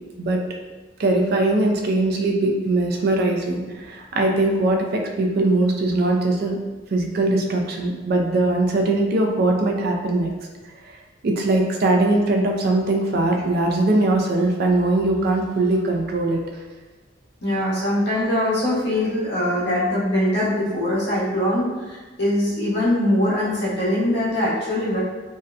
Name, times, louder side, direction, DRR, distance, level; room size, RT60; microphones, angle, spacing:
voice 1, 1.0-3.6 3.9-6.6 6.9-10.3 11.2-16.4, right 2 dB, 55° right, 1 dB, 0.4 m, -21 dB
voice 2, 17.4-25.0, left 1 dB, 65° left, -7 dB, 0.9 m, -22 dB
2.7 x 2.1 x 2.4 m, 1.3 s
head